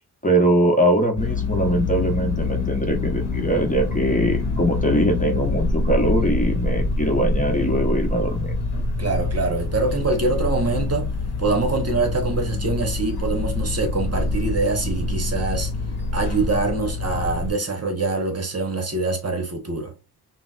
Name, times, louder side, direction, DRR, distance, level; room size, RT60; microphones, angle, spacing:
voice 1, 0.2-8.6, right 1 dB, 20° left, 0.8 m, -22 dB
sound 1, 1.2-17.5, left 3 dB, 85° left, 0.8 m, -25 dB
voice 2, 9.0-11.1 11.4-15.7 16.1-19.9, right 3 dB, 40° right, 0.9 m, -24 dB
3.9 x 2.1 x 2.2 m
wide cardioid pair, 75°, 39 cm